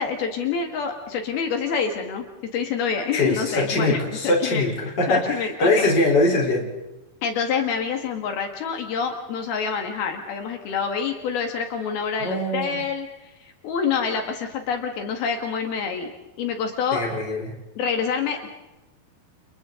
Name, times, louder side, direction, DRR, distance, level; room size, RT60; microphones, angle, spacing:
voice 1, 0.0-2.3 2.5-4.7 5.1-5.9 7.2-16.1 16.4-17.0 17.8-18.5, left 6 dB, 75° left, 4 dB, 3.7 m, -27 dB
voice 2, 3.1-6.7 12.2-12.8 16.9-17.5, left 2 dB, 25° left, 0 dB, 4.3 m, -22 dB
30.0 x 29.5 x 3.9 m, 0.99 s
omnidirectional pair, 4.6 m